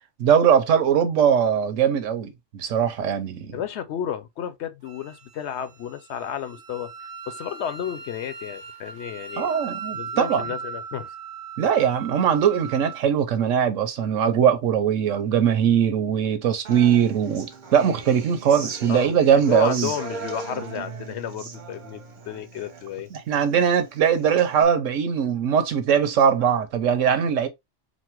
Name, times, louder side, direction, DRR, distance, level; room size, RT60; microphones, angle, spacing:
voice 1, 0.2-3.6 9.4-10.4 11.6-19.9 23.1-27.5, right 8 dB, 90° right, 1.1 m, -21 dB
voice 2, 3.5-9.5 9.9-11.1 18.9-23.1, left 9 dB, 70° left, 0.9 m, -32 dB
Wind instrument woodwind instrument, 4.8-13.0, right 6 dB, 65° right, 1.1 m, -38 dB
Human voice / Acoustic guitar, 16.6-24.6, right 5 dB, 45° right, 0.9 m, -38 dB
4.2 x 2.1 x 4.4 m
omnidirectional pair, 1.3 m